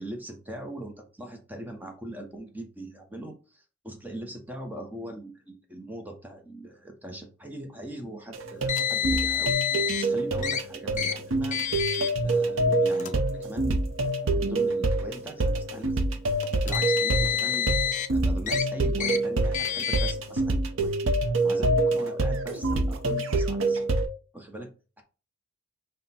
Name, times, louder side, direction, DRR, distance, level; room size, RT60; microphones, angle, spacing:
voice 1, 0.0-11.7 12.2-13.8 14.3-16.1 16.6-17.7 18.1-20.9 21.2-23.9 24.3-24.7, right 1 dB, 10° right, 4 dB, 0.7 m, -41 dB
sound 1, 8.3-24.1, right 2 dB, 70° right, 0.7 m, -26 dB
Car, 8.7-10.0 10.4-10.6 11.0-11.1 11.5-12.1 12.9-13.1 14.1-14.2 16.4-18.1 18.5-18.6 19.0-19.2 19.5-20.1, left 9 dB, 35° left, 0.4 m, -28 dB
5.9 x 2.2 x 4.1 m, 0.35 s
head